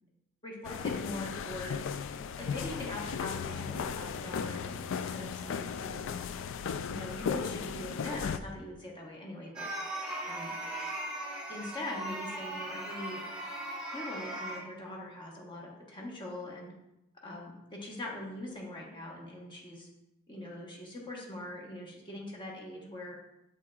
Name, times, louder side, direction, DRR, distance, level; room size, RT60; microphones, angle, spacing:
voice 1, 0.4-2.0 2.4-6.1 6.9-9.7 10.2-10.5 11.5-13.2 13.9-16.7 17.2-19.9 20.3-23.2, left 1 dB, 20° left, -2 dB, 1.2 m, -42 dB
sound 1, 0.6-8.4, left 6 dB, 60° left, 0.3 m, -36 dB
sound 2, 9.5-14.6, right 1 dB, 5° right, 2.3 m, -38 dB
7.0 x 5.6 x 2.4 m, 0.88 s
head